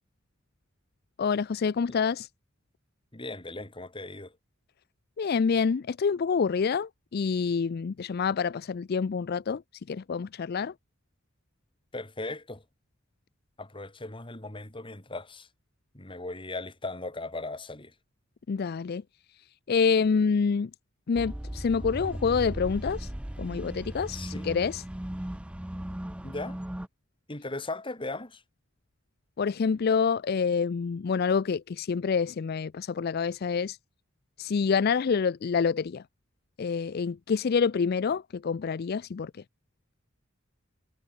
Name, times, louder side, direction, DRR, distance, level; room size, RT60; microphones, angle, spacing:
voice 1, 1.2-2.3 5.2-9.6 9.9-10.7 18.5-19.0 19.7-20.7 21.1-23.1 23.4-24.8 29.4-33.8 34.4-36.0 36.6-39.4, left 5 dB, 50° left, 0.4 m, -27 dB
voice 2, 3.1-4.3 11.9-12.6 13.6-15.5 15.9-17.9 24.1-24.5 26.2-26.6 27.3-28.4, left 2 dB, 25° left, 2.9 m, -38 dB
sound 1, 21.1-26.9, right 1 dB, 5° right, 0.4 m, -37 dB
head